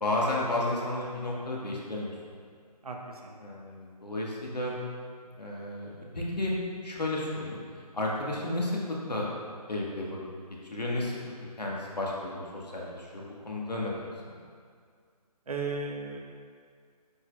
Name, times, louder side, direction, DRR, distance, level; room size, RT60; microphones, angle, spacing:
voice 1, 0.0-2.1 3.4-4.8 5.4-6.5 6.8-7.6 7.9-9.3 9.7-10.2 10.7-11.2 11.6-14.3, left 1 dB, 85° left, -3 dB, 1.6 m, -32 dB
voice 2, 2.8-3.4 15.5-16.2, right 4 dB, 65° right, 1 dB, 1.1 m, -35 dB
8.6 x 6.0 x 2.4 m, 2.1 s
figure-of-eight pair, 150°, 20 cm